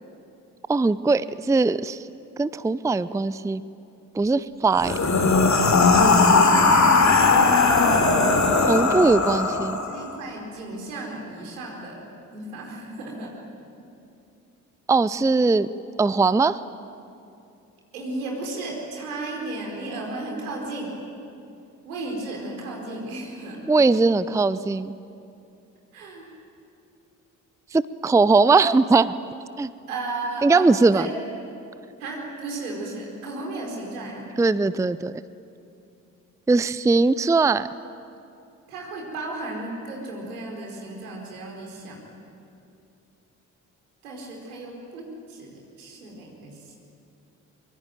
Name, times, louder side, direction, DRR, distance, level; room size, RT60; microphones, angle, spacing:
voice 1, 0.7-2.0 2.4-3.6 4.1-5.0 8.7-9.8 14.9-15.7 16.0-16.6 23.7-24.9 27.7-29.1 29.6-29.7 30.4-31.1 34.4-35.1 36.5-37.7, right 3 dB, 5° right, 17 dB, 0.6 m, -20 dB
voice 2, 4.7-6.1 6.4-7.6 9.1-9.2 9.7-11.9 12.3-13.3 17.9-20.9 21.8-23.6 25.9-26.3 29.9-31.1 32.0-34.2 38.7-42.0 44.0-46.5, right 2 dB, 75° right, 0 dB, 4.6 m, -34 dB
sound 1, 4.8-10.0, left 3 dB, 40° left, 3.3 m, -18 dB
24.0 x 24.0 x 9.2 m, 2.6 s
figure-of-eight pair, 45°, 43 cm